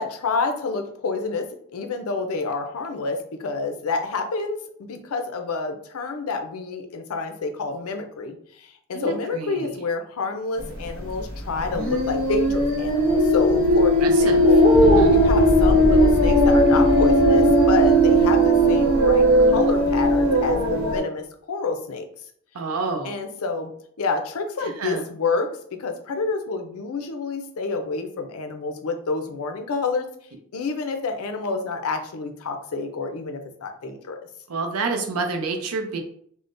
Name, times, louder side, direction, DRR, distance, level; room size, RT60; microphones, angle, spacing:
voice 1, 0.0-1.5 1.7-14.6 15.1-22.1 23.0-23.7 24.0-25.5 25.8-30.1 30.5-34.2, left 4 dB, 80° left, 6 dB, 0.5 m, -28 dB
voice 2, 8.9-9.7 14.0-14.5 14.8-15.2 22.5-23.1 24.6-25.1 34.5-36.0, right 4 dB, 80° right, 5 dB, 0.5 m, -28 dB
sound 1, 11.7-21.0, equal, 65° right, 1.0 m, -17 dB
sound 2, 14.7-19.9, equal, 10° right, 0.5 m, -27 dB
3.6 x 2.1 x 2.5 m, 0.63 s
head